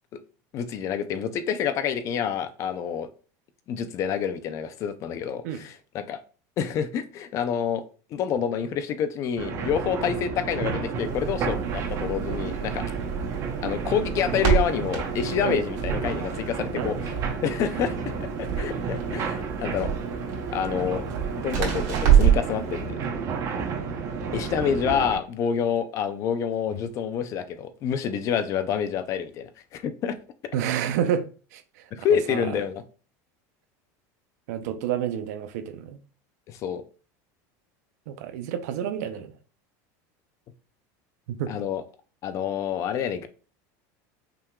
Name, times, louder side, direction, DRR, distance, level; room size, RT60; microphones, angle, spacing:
voice 1, 0.5-3.1 3.7-6.2 6.6-7.8 8.1-12.8 13.6-17.1 17.4-18.0 18.4-19.9 20.5-21.0 21.4-23.0 24.3-30.2 31.9-32.8 36.5-36.8 41.5-41.8 42.2-43.3, left 8 dB, 35° left, 0.5 m, -28 dB
sound 1, 9.4-25.2, right 5 dB, 35° right, 0.9 m, -31 dB
Crackle, 11.0-22.5, right 9 dB, 65° right, 2.2 m, -27 dB
voice 2, 30.5-31.2 31.5-31.6 32.3-32.6 34.5-36.0 38.1-39.3 41.3-41.5, right 9 dB, 80° right, 0.7 m, -29 dB
5.8 x 3.6 x 2.3 m
supercardioid pair, 155°, 9 cm